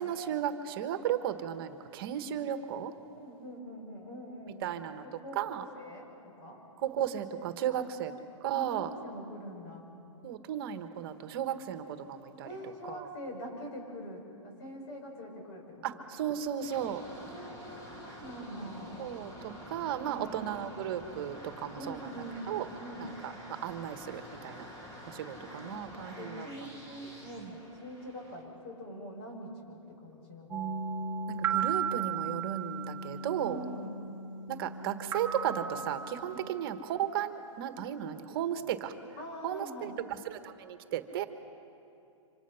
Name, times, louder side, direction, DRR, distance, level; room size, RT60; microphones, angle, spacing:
voice 1, 0.0-2.9 4.6-5.0 5.3-5.6 6.8-8.1 8.4-8.9 10.2-12.5 12.9-13.1 15.8-17.0 19.0-22.1 22.5-22.7 23.0-24.7 25.0-26.5 27.4-27.5 31.3-33.6 34.5-38.9 39.4-41.3, right 10 dB, 45° right, 9 dB, 1.4 m, -35 dB
voice 2, 3.1-4.6 5.0-6.6 7.7-7.8 8.5-9.9 12.4-16.1 17.2-19.0 20.0-20.4 21.8-22.5 22.8-23.1 25.3-30.7 33.4-33.9 36.2-36.5 39.2-39.9, equal, 50° left, 1 dB, 6.5 m, -44 dB
sound 1, 16.6-28.4, equal, 20° left, 2.7 m, -48 dB
sound 2, 30.5-37.0, right 6 dB, 15° right, 1.7 m, -36 dB
27.0 x 25.5 x 5.8 m, 2.7 s
hypercardioid pair, 150°, 17 cm